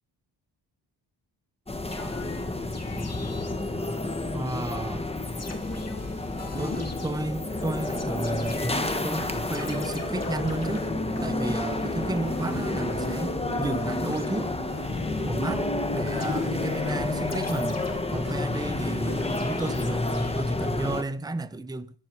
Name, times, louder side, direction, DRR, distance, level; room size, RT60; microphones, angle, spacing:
sound 1, 1.7-21.0, left 2 dB, 15° left, 1.3 m, -30 dB
sound 2, 1.9-4.4 4.6-4.8 5.2-13.3 13.6-15.3 15.5-20.3, left 4 dB, 35° left, 2.4 m, -43 dB
voice 1, 4.3-5.1 6.6-10.9 11.2-14.5 15.2-17.8 18.1-21.9, right 2 dB, 10° right, 0.8 m, -32 dB
sound 3, 6.5-19.3, right 2 dB, 40° right, 6.8 m, -44 dB
15.0 x 11.0 x 4.6 m
cardioid pair, 100°, 44 cm